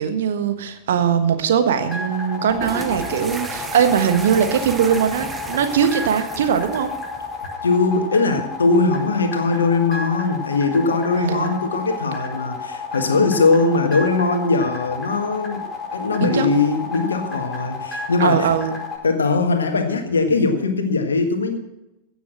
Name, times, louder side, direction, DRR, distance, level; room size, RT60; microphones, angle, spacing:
voice 1, 0.0-6.9 11.1-11.6 16.2-16.5 18.2-18.7, right 8 dB, 60° right, 8 dB, 1.3 m, -20 dB
sound 1, 1.7-19.0, left 4 dB, 20° left, 5.0 m, -31 dB
sound 2, 2.5-7.5, right 4 dB, 15° right, 1.0 m, -34 dB
voice 2, 7.6-15.7 15.9-18.5 19.0-21.6, left 3 dB, 70° left, 6 dB, 1.6 m, -20 dB
16.0 x 7.0 x 6.3 m, 0.94 s
figure-of-eight pair, 90°, 0 cm